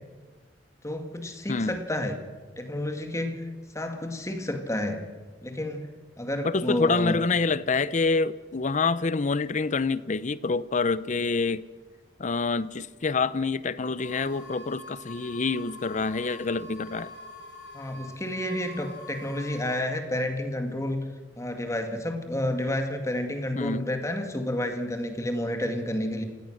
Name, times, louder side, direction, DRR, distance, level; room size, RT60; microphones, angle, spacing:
voice 1, 0.8-2.2 2.6-3.4 3.7-5.0 5.4-7.2 17.7-21.1 21.4-26.2, left 1 dB, 15° left, 2.0 m, -30 dB
voice 2, 1.5-1.8 6.4-11.7 12.2-17.1 23.6-23.8, left 4 dB, 45° left, 0.7 m, -27 dB
sound 1, 14.0-19.8, left 1 dB, 70° left, 2.7 m, -45 dB
29.0 x 17.5 x 6.5 m
head